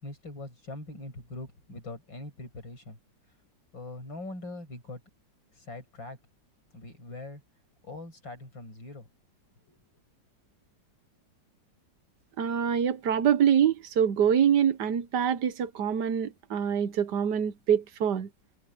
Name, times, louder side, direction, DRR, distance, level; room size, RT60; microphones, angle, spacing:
voice 1, 0.0-3.0 3.7-5.0 5.5-6.2 6.7-7.4 7.8-9.1 9.6-9.8, left 2 dB, 85° left, 7.7 m, -42 dB
voice 2, 12.4-18.3, right 8 dB, 65° right, 1.5 m, -25 dB
omnidirectional pair, 2.0 m